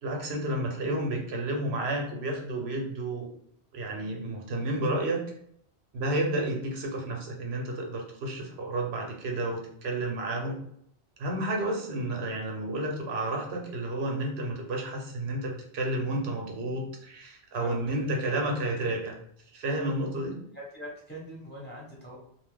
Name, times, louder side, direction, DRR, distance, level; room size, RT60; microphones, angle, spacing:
voice 1, 0.0-3.3 3.7-5.2 5.9-10.6 11.2-19.2 19.5-20.4, right 1 dB, 80° right, 1 dB, 0.9 m, -31 dB
voice 2, 17.5-17.9 20.5-22.2, equal, 10° left, -5 dB, 1.0 m, -42 dB
2.6 x 2.3 x 3.4 m, 0.68 s
omnidirectional pair, 1.1 m